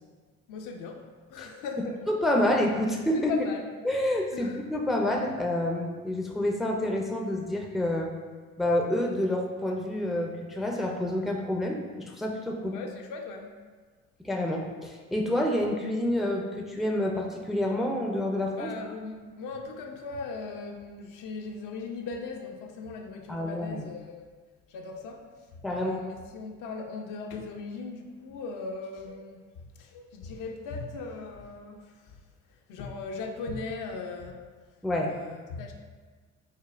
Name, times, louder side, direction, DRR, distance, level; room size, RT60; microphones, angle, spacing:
voice 1, 0.5-2.0 3.1-3.7 4.3-4.6 12.6-13.5 18.6-24.2 24.7-25.2 25.7-29.4 29.8-32.1 32.7-34.5 35.1-35.7, left 4 dB, 60° left, 3 dB, 0.5 m, -38 dB
voice 2, 2.1-3.3 3.8-8.1 8.6-12.8 14.2-18.7 23.3-23.9 25.6-26.0 34.8-35.1, left 1 dB, ahead, 0 dB, 0.4 m, -28 dB
5.0 x 2.0 x 2.5 m, 1.4 s
hypercardioid pair, 50°, 36 cm